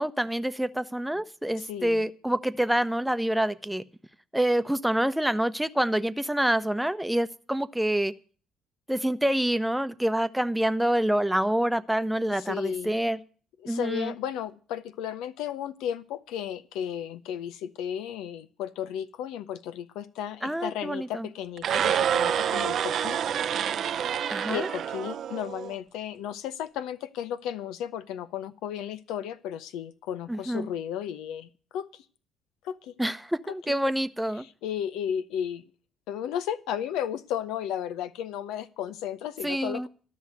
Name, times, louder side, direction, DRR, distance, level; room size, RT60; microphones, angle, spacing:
voice 1, 0.0-3.8 4.3-8.1 8.9-13.2 13.7-14.1 20.4-21.3 24.3-24.7 30.3-30.7 33.0-34.4 39.4-39.9, right 1 dB, 5° right, 0.8 m, -27 dB
voice 2, 1.6-2.0 12.3-12.9 13.6-23.2 24.5-32.0 32.6-32.9 33.7-33.8 34.4-35.6 36.1-39.9, left 9 dB, 75° left, 0.6 m, -34 dB
sound 1, 21.6-25.7, right 9 dB, 60° right, 0.6 m, -27 dB
13.0 x 6.4 x 9.3 m
hypercardioid pair, 55°, 0 cm